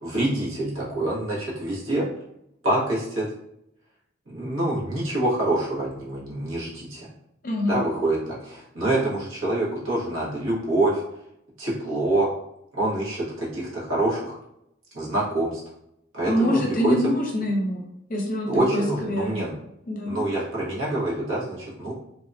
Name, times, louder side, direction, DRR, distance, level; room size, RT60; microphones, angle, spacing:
voice 1, 0.0-2.1 2.6-3.3 4.3-7.1 7.7-11.0 11.6-12.3 12.7-14.4 14.9-15.6 16.1-16.9 18.5-19.5 20.0-21.9, right 1 dB, 90° right, -6 dB, 1.2 m, -26 dB
voice 2, 7.4-7.8 16.3-17.8 18.1-19.4 19.9-20.2, equal, 45° left, 0 dB, 0.6 m, -25 dB
2.7 x 2.6 x 2.2 m, 0.78 s
head